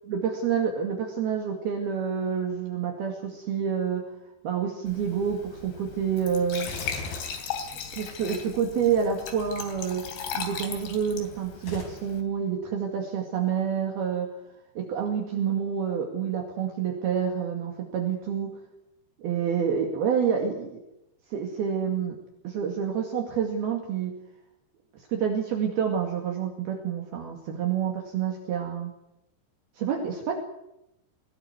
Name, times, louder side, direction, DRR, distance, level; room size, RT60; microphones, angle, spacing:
voice 1, 0.1-4.0 4.4-6.7 7.9-10.0 10.3-14.3 14.8-18.5 19.2-20.8 21.3-22.2 22.4-24.1 24.9-28.9 29.8-30.4, right 7 dB, 60° right, 2 dB, 3.9 m, -28 dB
Glass / Trickle dribble / Fill (with liquid), 4.9-12.2, left 7 dB, 65° left, 5.0 m, -38 dB
Gunshot gunfire, 6.6-8.4 11.6-11.8, left 3 dB, 50° left, 6.4 m, -39 dB
21.5 x 17.5 x 9.6 m, 0.87 s
omnidirectional pair, 5.3 m